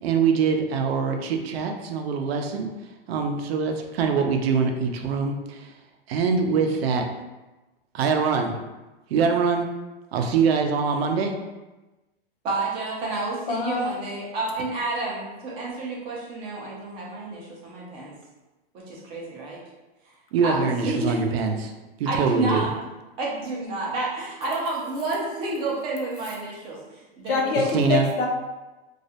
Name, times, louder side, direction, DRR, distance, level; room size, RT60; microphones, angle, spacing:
voice 1, 0.0-5.8 6.1-7.1 7.9-8.5 9.1-9.7 10.1-11.4 20.3-21.7 22.0-22.7 27.7-28.1, right 5 dB, 80° right, 4 dB, 0.5 m, -24 dB
voice 2, 12.4-18.1 18.7-19.6 20.4-21.1 22.1-22.7 23.2-27.7, right 2 dB, 20° right, -4 dB, 0.3 m, -30 dB
voice 3, 13.5-13.9 27.3-28.3, left 4 dB, 60° left, 1 dB, 0.6 m, -24 dB
2.3 x 2.0 x 2.7 m, 1.1 s
supercardioid pair, 150°, 30 cm